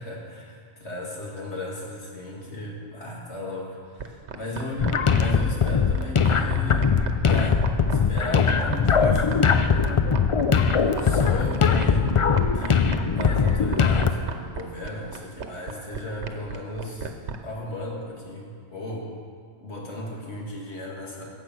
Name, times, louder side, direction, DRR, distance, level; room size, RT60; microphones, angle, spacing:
voice 1, 0.0-7.0 7.3-10.0 10.5-12.3 12.5-17.1 17.4-19.1 19.6-21.2, left 1 dB, 75° left, -3 dB, 2.5 m, -36 dB
sound 1, 4.0-17.4, right 6 dB, 75° right, 1.2 m, -33 dB
sound 2, 4.8-14.1, left 6 dB, 50° left, 0.4 m, -21 dB
15.5 x 8.1 x 6.1 m, 2.1 s
omnidirectional pair, 1.2 m